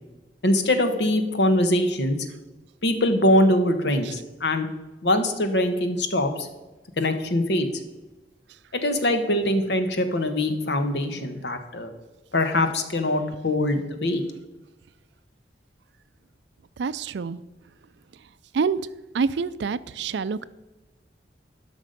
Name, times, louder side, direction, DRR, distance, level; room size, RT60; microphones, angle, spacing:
voice 1, 0.4-2.2 2.8-4.7 5.0-6.5 7.0-7.7 8.7-11.9 12.3-14.2, left 1 dB, 75° left, 7 dB, 1.2 m, -23 dB
voice 2, 16.8-17.4 18.5-18.8 19.1-20.5, right 5 dB, 75° right, 17 dB, 0.4 m, -26 dB
12.0 x 6.0 x 5.2 m, 1.1 s
head